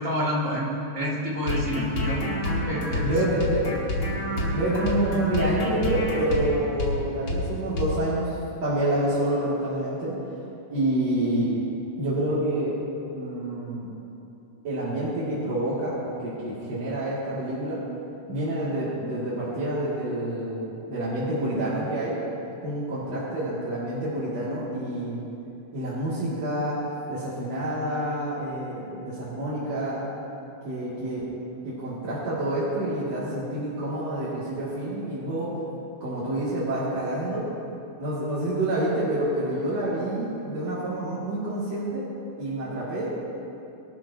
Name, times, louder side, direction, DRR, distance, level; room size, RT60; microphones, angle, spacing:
voice 1, 0.0-2.2 2.6-3.2, equal, 25° right, -6 dB, 2.3 m, -28 dB
sound 1, 1.4-7.0 7.3-7.4 7.8-7.9, left 1 dB, 40° left, 2.3 m, -28 dB
voice 2, 3.0-3.7 4.5-8.3 8.6-10.1 10.7-11.5 12.0-12.7 13.1-13.9 14.6-17.8 18.3-22.2 22.6-25.2 25.7-26.8 27.1-30.1 30.6-31.2 31.6-35.5 36.0-37.5 38.0-42.1 42.4-43.1, right 1 dB, 55° right, -11 dB, 3.6 m, -28 dB
22.5 x 12.5 x 2.9 m, 2.8 s
omnidirectional pair, 3.6 m